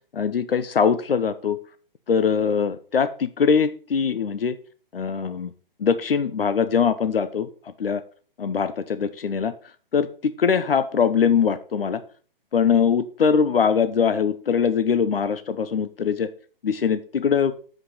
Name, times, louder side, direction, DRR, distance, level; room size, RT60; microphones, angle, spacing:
voice 1, 0.1-1.6 2.1-4.6 4.9-5.5 5.8-7.5 7.8-8.0 8.4-9.5 9.9-12.0 12.5-16.3 16.6-17.5, left 6 dB, 75° left, 13 dB, 0.9 m, -22 dB
9.0 x 7.8 x 5.6 m, 0.41 s
hypercardioid pair, 140°, 29 cm